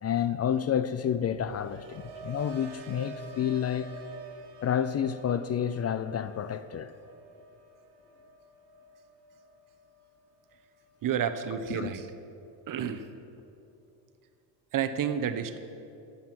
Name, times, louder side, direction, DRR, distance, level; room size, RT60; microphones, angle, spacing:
voice 1, 0.0-3.9 4.6-6.9 11.7-11.9, left 9 dB, 40° left, 0.5 m, -29 dB
sound 1, 1.2-11.2 11.5-12.0, right 2 dB, 75° right, 1.4 m, -48 dB
voice 2, 11.0-12.1 12.7-13.0 14.7-15.6, right 8 dB, 50° right, 0.9 m, -30 dB
13.0 x 8.4 x 6.0 m
cardioid pair, 100°, 41 cm